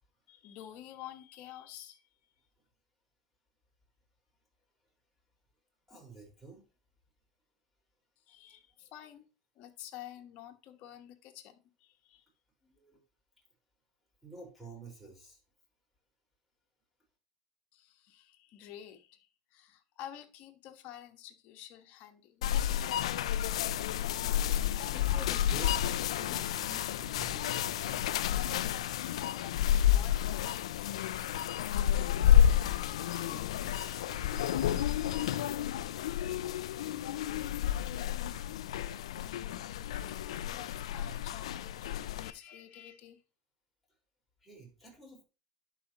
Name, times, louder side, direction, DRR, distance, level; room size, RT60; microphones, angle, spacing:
voice 1, 0.3-2.0 8.3-9.3 9.5-12.2 17.7-22.4 29.9-30.6 39.2-43.2, left 11 dB, 55° left, 1.3 m, -50 dB
voice 2, 5.9-6.6 12.6-13.0 14.2-15.4 24.6-28.0 28.5-28.7 33.1-35.7 44.4-45.2, right 2 dB, ahead, 4.5 m, -51 dB
sound 1, 22.4-42.3, left 10 dB, 90° left, 0.4 m, -30 dB
11.0 x 5.0 x 2.9 m
supercardioid pair, 105°, 3 cm